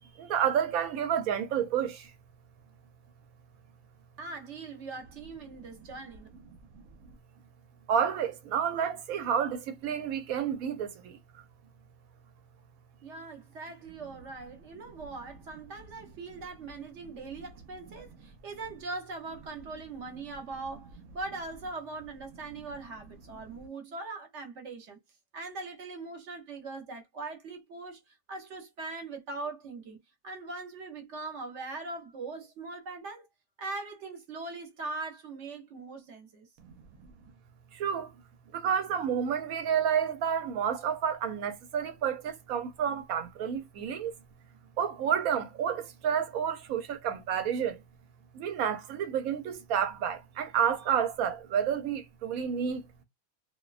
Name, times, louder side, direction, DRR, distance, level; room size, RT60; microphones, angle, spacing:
voice 1, 0.2-2.1 6.7-6.8 7.9-11.4 36.6-36.7 37.7-38.1 38.5-44.1 44.8-47.8 48.3-52.9, right 8 dB, 90° right, 1.1 m, -30 dB
voice 2, 4.2-6.3 13.0-25.0 25.3-33.3 33.6-36.5, right 3 dB, 60° right, 0.9 m, -41 dB
2.5 x 2.2 x 2.3 m
omnidirectional pair, 1.5 m